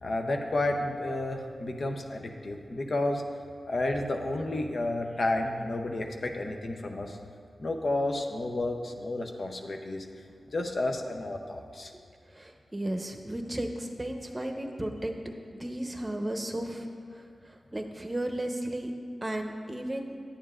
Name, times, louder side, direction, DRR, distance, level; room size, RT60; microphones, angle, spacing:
voice 1, 0.0-3.2 3.7-7.2 7.6-10.1 10.5-11.9, left 2 dB, 60° left, 3 dB, 0.6 m, -31 dB
voice 2, 12.3-15.1 15.6-18.9 19.2-20.1, right 1 dB, 25° right, 4 dB, 0.8 m, -34 dB
10.0 x 7.2 x 2.4 m, 2.2 s
cardioid pair, 45°, 0 cm